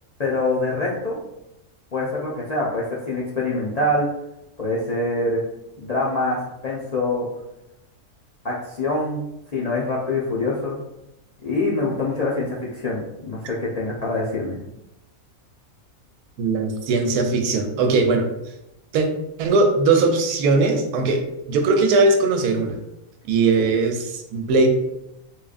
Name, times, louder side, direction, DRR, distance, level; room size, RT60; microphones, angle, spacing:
voice 1, 0.2-1.2 1.9-4.1 4.6-5.4 5.8-7.3 8.4-9.3 9.5-10.8 11.4-14.6 23.5-23.8, left 2 dB, 65° left, -5 dB, 0.4 m, -25 dB
voice 2, 16.4-18.2 18.9-19.1 19.4-21.2 21.5-22.8 23.3-24.7, right 3 dB, 85° right, 5 dB, 1.1 m, -19 dB
4.0 x 3.1 x 2.4 m, 0.86 s
omnidirectional pair, 1.6 m